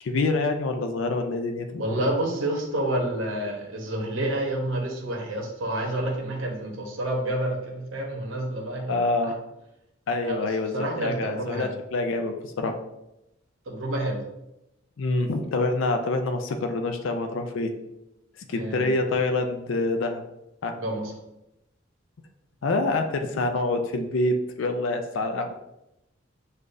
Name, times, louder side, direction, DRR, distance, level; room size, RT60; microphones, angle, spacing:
voice 1, 0.0-1.8 8.9-9.4 10.1-12.8 15.0-17.7 18.5-20.2 20.6-20.7 22.6-25.5, left 2 dB, 70° left, 5 dB, 0.4 m, -26 dB
voice 2, 1.8-9.3 10.2-10.5 10.7-11.7 13.7-14.2 18.5-19.0 20.7-21.1, right 1 dB, 75° right, 0 dB, 0.8 m, -29 dB
6.4 x 2.5 x 2.5 m, 0.88 s
head